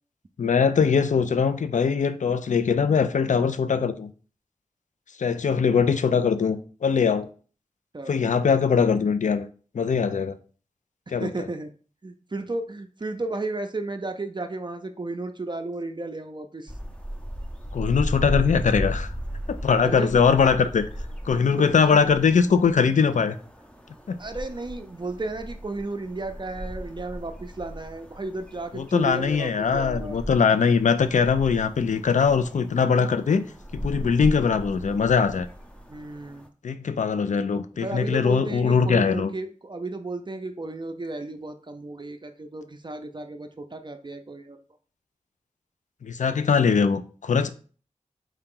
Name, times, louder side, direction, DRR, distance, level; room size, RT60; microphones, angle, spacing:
voice 1, 0.4-4.1 5.2-7.3 8.1-9.5 9.7-10.3 11.1-11.3 17.7-19.1 19.5-20.8 21.3-23.4 24.1-24.2 28.7-33.4 33.7-35.5 36.6-39.3 46.0-47.5, left 6 dB, 70° left, 0.4 m, -21 dB
voice 2, 11.1-11.7 12.0-16.8 19.8-20.1 20.6-20.7 21.6-22.0 24.2-30.2 35.9-36.5 37.8-44.6, right 2 dB, 35° right, 0.5 m, -33 dB
sound 1, 16.7-36.5, equal, 10° left, 0.6 m, -36 dB
4.6 x 2.9 x 3.7 m
wide cardioid pair, 65°, 13 cm